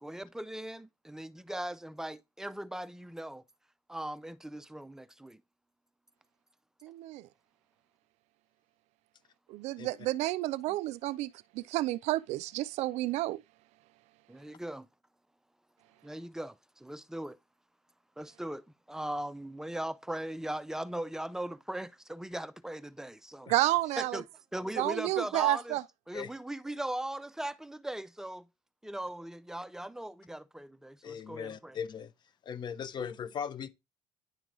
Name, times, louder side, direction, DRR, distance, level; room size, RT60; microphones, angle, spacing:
voice 1, 0.0-3.4 3.9-5.4 10.7-10.8 14.3-14.9 16.0-17.4 18.2-23.5 24.0-24.2 24.5-25.8 26.1-28.5 28.8-31.8, right 1 dB, 5° right, 0.3 m, -39 dB
voice 2, 6.8-7.3 9.5-13.4 23.5-24.2 24.8-25.8, right 17 dB, 70° right, 0.4 m, -30 dB
voice 3, 31.0-32.1 32.4-33.7, left 7 dB, 40° left, 0.6 m, -38 dB
10.0 x 3.8 x 3.1 m
cardioid pair, 120°, 12 cm